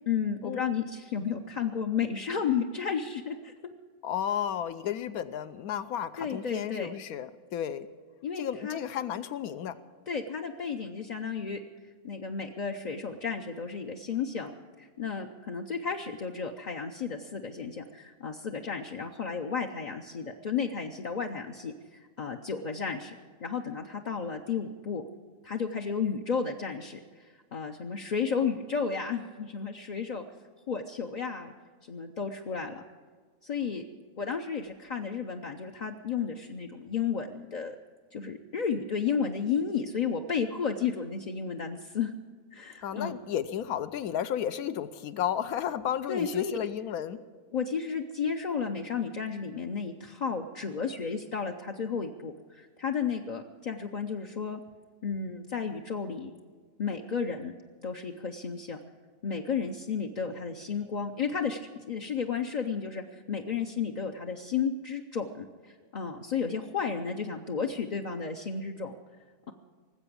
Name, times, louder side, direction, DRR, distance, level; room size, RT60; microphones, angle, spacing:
voice 1, 0.1-3.5 6.2-6.9 8.2-8.8 10.1-11.6 12.0-14.5 14.8-23.1 23.4-25.0 25.4-30.2 30.7-31.5 31.9-32.8 33.4-33.8 34.2-37.8 38.1-42.1 42.5-43.1 46.1-46.5 47.5-54.6 55.0-56.3 56.8-57.5 57.8-58.8 59.2-61.6 61.9-65.5 65.9-68.9, left 6 dB, 50° left, 2 dB, 0.5 m, -33 dB
voice 2, 4.0-7.9 8.4-9.7 42.8-47.2, left 10 dB, 75° left, 13 dB, 1.2 m, -32 dB
19.0 x 8.0 x 8.5 m, 1.5 s
omnidirectional pair, 1.6 m